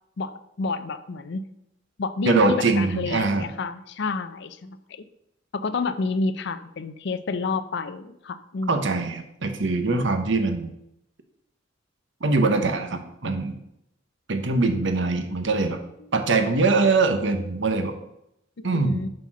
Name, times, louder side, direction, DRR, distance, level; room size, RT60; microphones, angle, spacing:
voice 1, 0.2-1.4 2.0-5.0 5.5-9.1 16.0-16.1 18.7-19.1, left 3 dB, 65° left, 11 dB, 0.5 m, -29 dB
voice 2, 2.3-3.4 8.7-10.7 12.2-13.6 14.3-15.8 16.1-17.9 18.6-19.0, right 3 dB, 70° right, 6 dB, 1.0 m, -22 dB
7.6 x 4.3 x 6.1 m, 0.80 s
head